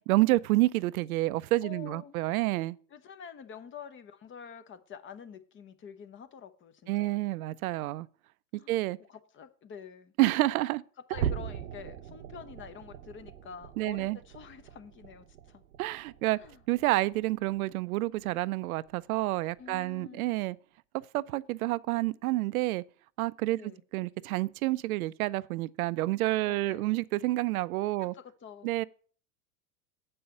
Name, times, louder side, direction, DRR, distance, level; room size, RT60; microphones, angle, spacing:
voice 1, 0.0-2.8 6.9-8.1 8.7-9.0 10.2-10.8 13.8-14.2 15.8-16.4 16.7-20.6 20.9-22.8 23.2-28.1 28.6-28.8, right 18 dB, 70° right, 0.5 m, -29 dB
voice 2, 1.6-2.1 2.9-7.2 8.5-8.8 9.1-10.1 11.1-15.6 16.3-16.6 19.6-20.3 23.5-23.8 26.5-26.8 28.0-28.7, left 7 dB, 25° left, 0.9 m, -47 dB
sound 1, 11.1-17.8 18.1-18.4 18.9-19.0 19.6-19.7, right 9 dB, 85° right, 0.9 m, -40 dB
7.6 x 5.5 x 6.9 m
hypercardioid pair, 105°, 45 cm